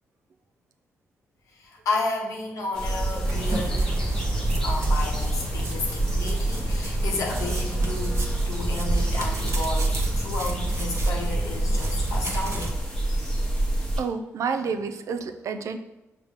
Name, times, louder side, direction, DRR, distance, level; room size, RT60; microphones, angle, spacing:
voice 1, 1.5-4.0 4.6-8.2 8.5-12.8, left 3 dB, 80° left, -1 dB, 0.9 m, -32 dB
sound 1, 2.8-14.0, right 2 dB, 10° left, 1.0 m, -27 dB
sound 2, 3.2-12.7, right 1 dB, 55° right, 0.8 m, -32 dB
voice 2, 14.0-15.8, right 5 dB, 70° right, 8 dB, 0.4 m, -29 dB
5.4 x 2.1 x 3.5 m, 0.97 s
cardioid pair, 65°, 6 cm